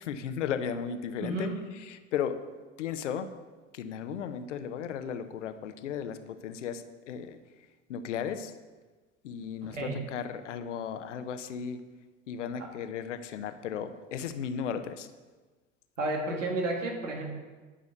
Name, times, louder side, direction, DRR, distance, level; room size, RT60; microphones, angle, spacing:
voice 1, 0.0-1.5 1.8-2.4 2.8-3.3 3.7-7.4 7.9-8.5 9.2-11.8 12.3-15.1, left 8 dB, 75° left, 10 dB, 0.9 m, -35 dB
voice 2, 1.2-1.6 9.6-10.0 12.6-12.7 16.0-17.2, right 2 dB, 85° right, 1 dB, 1.9 m, -32 dB
10.0 x 6.3 x 6.6 m, 1.3 s
hypercardioid pair, 75°, 37 cm